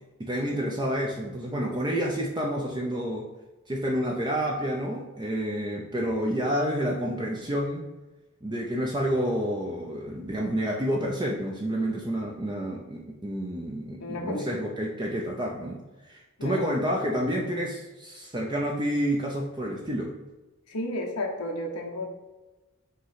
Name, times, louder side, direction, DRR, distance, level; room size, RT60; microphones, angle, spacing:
voice 1, 0.2-3.3 3.7-7.9 8.4-20.2, equal, 20° right, -1 dB, 0.6 m, -29 dB
voice 2, 14.0-14.6 16.4-16.7 20.7-22.1, left 1 dB, 85° left, 0 dB, 1.0 m, -32 dB
5.6 x 3.1 x 5.6 m, 1.1 s
head